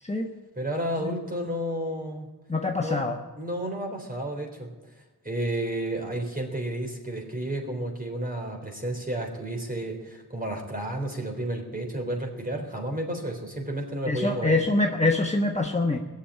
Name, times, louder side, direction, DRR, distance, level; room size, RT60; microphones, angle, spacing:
voice 1, 0.6-2.3 2.8-3.0 3.4-4.7 5.2-14.6, right 1 dB, 20° right, 2 dB, 3.8 m, -31 dB
voice 2, 2.5-3.2 14.1-16.0, left 2 dB, 15° left, 1 dB, 1.2 m, -25 dB
18.5 x 7.3 x 9.8 m, 1.1 s
cardioid pair, 65°, 39 cm